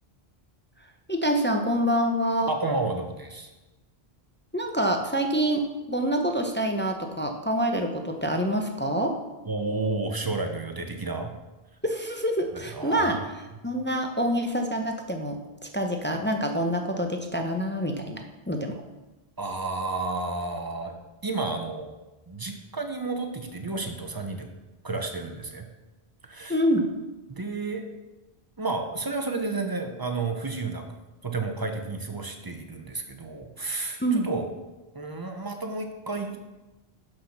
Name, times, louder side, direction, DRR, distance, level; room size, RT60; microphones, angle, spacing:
voice 1, 1.1-2.5 4.5-9.2 11.8-13.2 13.6-15.4 15.7-18.2 18.5-18.8 26.5-26.9 34.0-34.3, equal, 15° left, 3 dB, 0.5 m, -26 dB
voice 2, 2.5-3.5 9.5-11.3 12.5-13.2 19.4-20.9 21.2-22.0 22.3-24.5 24.8-25.7 26.2-26.6 27.3-27.8 28.6-30.8 31.2-34.5 34.9-36.4, right 3 dB, 25° right, 5 dB, 0.7 m, -31 dB
5.9 x 5.8 x 5.8 m, 1.1 s
omnidirectional pair, 1.1 m